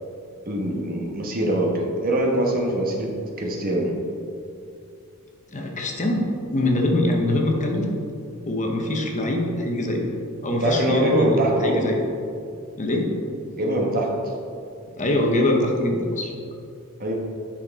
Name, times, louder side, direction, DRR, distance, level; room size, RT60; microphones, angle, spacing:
voice 1, 0.5-3.9 10.6-11.9 13.6-14.2 17.0-17.1, right 1 dB, 40° right, 0 dB, 1.2 m, -23 dB
voice 2, 5.5-7.9 8.5-10.1 10.4-12.0 12.8-13.1 15.0-16.3, left 1 dB, 35° left, 1 dB, 0.9 m, -23 dB
8.5 x 5.8 x 4.1 m, 2.5 s
head